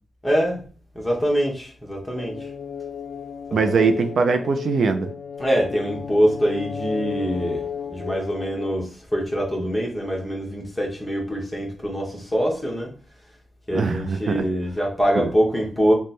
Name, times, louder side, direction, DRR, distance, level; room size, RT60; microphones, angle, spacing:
voice 1, 0.2-0.6 0.9-2.4 3.7-3.9 5.4-12.9 13.7-15.9, equal, 5° left, 1.1 m, -24 dB
sound 1, 2.2-8.8, left 7 dB, 70° left, 0.3 m, -34 dB
voice 2, 3.5-5.1 13.7-14.4 15.2-15.3, right 4 dB, 65° right, 0.4 m, -21 dB
3.2 x 2.1 x 4.1 m
wide cardioid pair, 110°, 0 cm